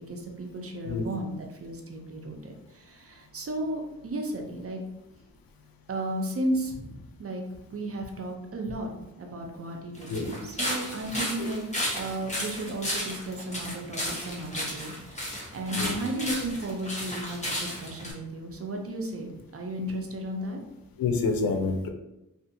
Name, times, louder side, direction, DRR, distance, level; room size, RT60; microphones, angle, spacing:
voice 1, 0.1-4.8 5.9-7.4 7.7-8.9 9.2-11.6 12.0-20.6, right 1 dB, 40° right, 2 dB, 0.6 m, -34 dB
sound 1, 9.9-18.1, equal, 20° left, 1.0 m, -33 dB
voice 2, 10.1-10.5 11.4-11.5 15.8-15.9 21.0-21.9, left 4 dB, 80° left, 4 dB, 0.5 m, -28 dB
2.5 x 2.5 x 2.7 m, 0.93 s
cardioid pair, 65°, 35 cm